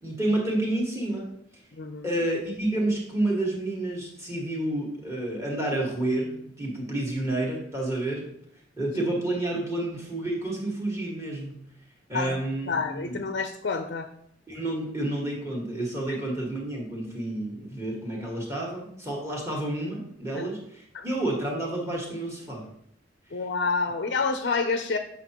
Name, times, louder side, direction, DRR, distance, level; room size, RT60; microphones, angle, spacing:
voice 1, 0.0-1.3 2.0-8.3 8.8-11.5 12.1-13.2 14.5-22.7, right 1 dB, 15° right, -2 dB, 1.8 m, -29 dB
voice 2, 1.7-2.1 12.1-12.4 12.7-14.1 20.4-20.5 20.9-21.1 23.3-25.0, left 4 dB, 60° left, 7 dB, 0.5 m, -28 dB
8.3 x 5.8 x 3.0 m, 0.71 s
head